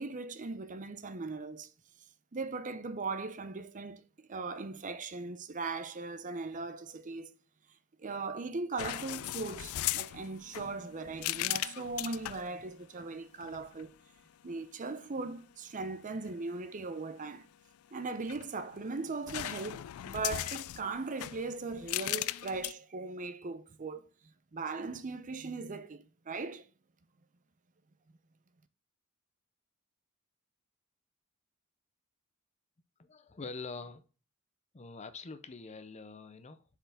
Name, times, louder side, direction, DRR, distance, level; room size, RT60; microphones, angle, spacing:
voice 1, 0.0-1.7 2.3-4.0 4.3-7.3 8.0-13.9 14.4-17.5 17.9-24.0 24.5-26.7, right 3 dB, 35° right, 0.6 m, -39 dB
sound 1, 8.8-12.5 13.4-13.8 18.0-18.8 19.3-22.7, left 15 dB, 70° left, 0.3 m, -38 dB
voice 2, 33.0-34.0 34.7-36.6, left 4 dB, 30° left, 0.6 m, -45 dB
7.4 x 4.6 x 3.5 m
head